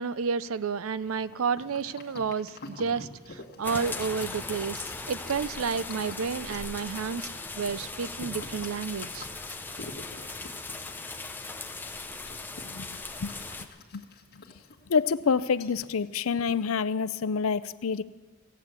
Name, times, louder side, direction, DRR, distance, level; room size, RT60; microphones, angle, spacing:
voice 1, 0.0-9.3, right 5 dB, 85° right, 16 dB, 0.5 m, -31 dB
sound 1, 1.0-16.8, left 2 dB, 55° left, 1.8 m, -48 dB
sound 2, 3.6-13.7, left 3 dB, 10° left, 0.8 m, -38 dB
voice 2, 14.9-18.0, left 5 dB, 80° left, 16 dB, 0.5 m, -27 dB
16.5 x 9.8 x 8.2 m, 1.4 s
head